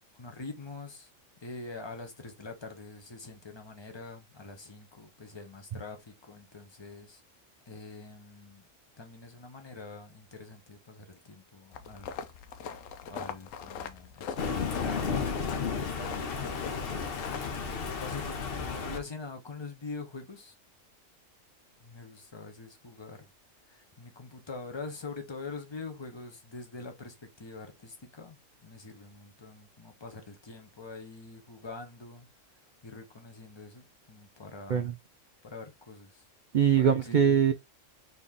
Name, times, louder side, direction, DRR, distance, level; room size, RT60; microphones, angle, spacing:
voice 1, 0.1-1.1 1.4-7.2 7.7-8.7 9.0-12.1 13.0-17.0 17.2-20.5 21.8-23.3 23.6-32.3 32.8-34.9 35.4-36.3 36.8-37.3, left 3 dB, 25° left, 0.9 m, -44 dB
sound 1, 11.7-17.7, left 7 dB, 80° left, 1.0 m, -42 dB
Thunder, 14.4-19.0, left 5 dB, 55° left, 0.9 m, -33 dB
voice 2, 36.5-37.5, right 8 dB, 85° right, 0.4 m, -22 dB
4.1 x 3.1 x 3.5 m
omnidirectional pair, 1.3 m